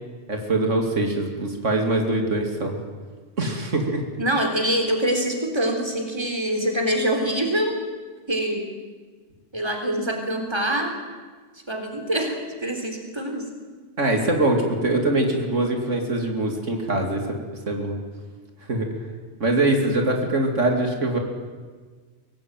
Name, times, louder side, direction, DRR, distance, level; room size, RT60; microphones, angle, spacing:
voice 1, 0.3-2.8 3.4-4.0 14.0-17.2 17.7-18.0 18.7-18.9 19.4-21.2, right 2 dB, 85° right, 3 dB, 3.3 m, -23 dB
voice 2, 4.2-7.8 8.3-8.7 9.5-10.9 11.7-13.4, right 1 dB, 20° right, 3 dB, 3.8 m, -25 dB
24.0 x 18.0 x 9.2 m, 1.5 s
omnidirectional pair, 1.2 m